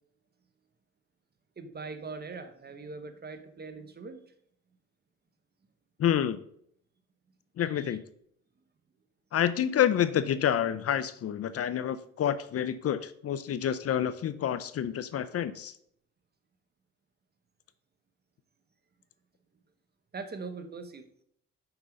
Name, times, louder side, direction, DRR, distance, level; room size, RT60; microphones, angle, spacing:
voice 1, 1.6-4.2 7.6-8.0 20.1-21.0, right 4 dB, 30° right, 9 dB, 1.0 m, -41 dB
voice 2, 6.0-6.4 7.6-8.0 9.3-15.7, left 10 dB, 50° left, 13 dB, 0.6 m, -28 dB
6.0 x 5.4 x 5.1 m, 0.68 s
cardioid pair, 90°, 30 cm